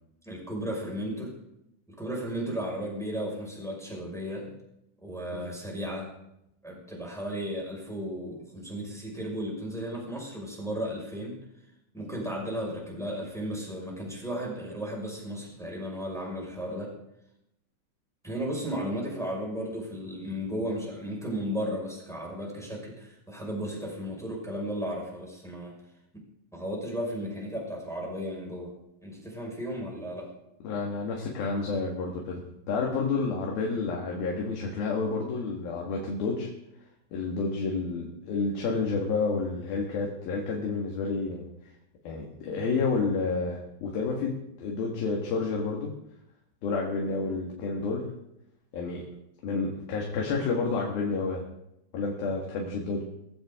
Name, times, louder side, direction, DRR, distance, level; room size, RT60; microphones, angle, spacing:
voice 1, 0.2-1.4 1.9-4.5 5.0-6.1 6.6-11.4 11.9-16.9 18.2-25.7 26.5-28.7 29.0-30.3, equal, ahead, -3 dB, 5.3 m, -34 dB
voice 2, 30.6-36.5 37.1-41.5 42.1-45.9 46.6-48.0 48.7-49.0 49.4-51.4 51.9-53.0, left 4 dB, 70° left, -1 dB, 3.7 m, -30 dB
21.0 x 15.0 x 3.8 m, 0.83 s
omnidirectional pair, 4.6 m